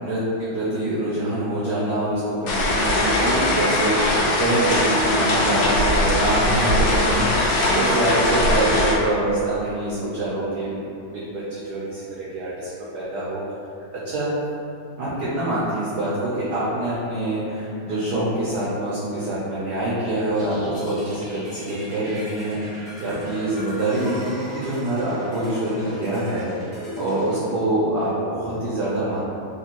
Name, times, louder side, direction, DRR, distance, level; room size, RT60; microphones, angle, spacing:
voice 1, 0.0-13.4 13.9-14.3 15.0-29.2, right 1 dB, 70° right, -8 dB, 1.1 m, -25 dB
sound 1, 2.5-8.9, left 1 dB, 80° left, 1.4 m, -20 dB
sound 2, 20.3-27.4, equal, 30° right, 1.0 m, -39 dB
3.4 x 2.9 x 2.8 m, 2.7 s
omnidirectional pair, 2.2 m